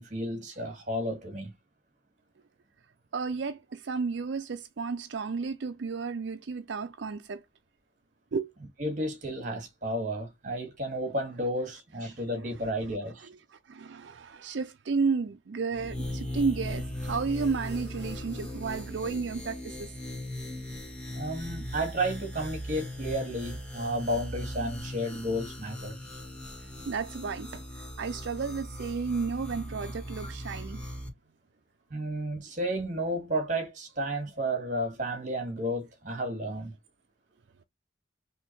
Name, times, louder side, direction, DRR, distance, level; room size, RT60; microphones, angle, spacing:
voice 1, 0.0-1.5 8.8-13.3 21.1-26.0 30.2-30.3 31.9-36.7, right 1 dB, 45° right, 2.0 m, -32 dB
voice 2, 3.1-7.4 8.3-8.5 13.2-19.9 26.9-27.6 28.0-30.8, right 4 dB, 80° right, 0.5 m, -32 dB
sound 1, 15.7-31.1, left 1 dB, 5° left, 1.7 m, -39 dB
4.3 x 3.1 x 3.0 m
head